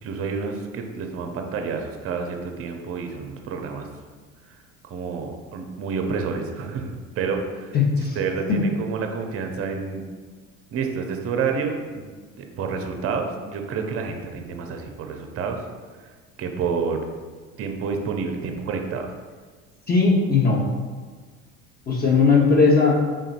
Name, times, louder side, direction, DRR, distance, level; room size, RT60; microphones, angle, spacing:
voice 1, 0.0-3.9 4.5-4.6 4.8-7.8 8.1-10.0 10.7-11.8 12.4-15.6 16.0-17.0 17.6-19.1, right 5 dB, 35° right, 4 dB, 0.6 m, -29 dB
voice 2, 7.7-8.2 8.5-8.6 19.9-20.6 21.9-23.0, left 4 dB, 25° left, -1 dB, 0.9 m, -18 dB
3.8 x 3.7 x 2.4 m, 1.5 s
hypercardioid pair, 75°, 41 cm